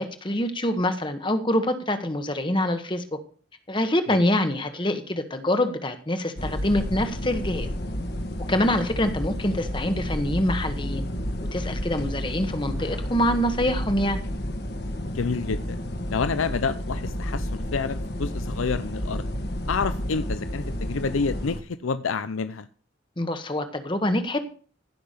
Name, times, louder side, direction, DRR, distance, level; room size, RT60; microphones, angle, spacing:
voice 1, 0.0-3.2 3.7-7.7 8.5-11.0 11.5-14.2 23.2-24.4, left 1 dB, 25° left, 1.2 m, -25 dB
sound 1, 6.4-21.6, equal, 50° left, 1.4 m, -31 dB
voice 2, 15.1-15.8 16.1-19.3 19.7-22.7, left 5 dB, 85° left, 0.6 m, -28 dB
16.0 x 5.9 x 6.7 m
head